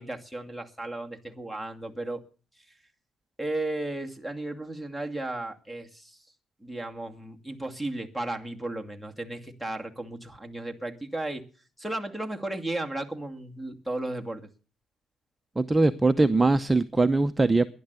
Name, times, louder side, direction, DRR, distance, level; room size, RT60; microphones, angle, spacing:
voice 1, 0.0-2.2 3.4-6.2 6.6-11.4 11.8-14.5, right 2 dB, 5° left, 2.3 m, -34 dB
voice 2, 15.6-17.7, right 3 dB, 15° right, 0.7 m, -21 dB
15.5 x 11.0 x 8.1 m
cardioid pair, 90°, 0 cm